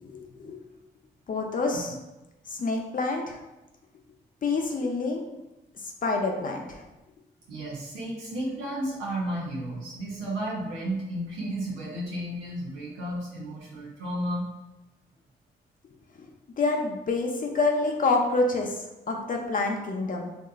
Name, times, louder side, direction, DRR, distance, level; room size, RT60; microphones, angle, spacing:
voice 1, 0.0-0.6 1.3-2.0 2.5-3.4 4.4-5.2 6.0-6.8 16.6-20.3, left 3 dB, 45° left, 1 dB, 0.5 m, -27 dB
voice 2, 7.5-14.5, right 1 dB, 85° right, -6 dB, 0.6 m, -33 dB
2.7 x 2.4 x 2.3 m, 1.0 s
supercardioid pair, 45°, 20 cm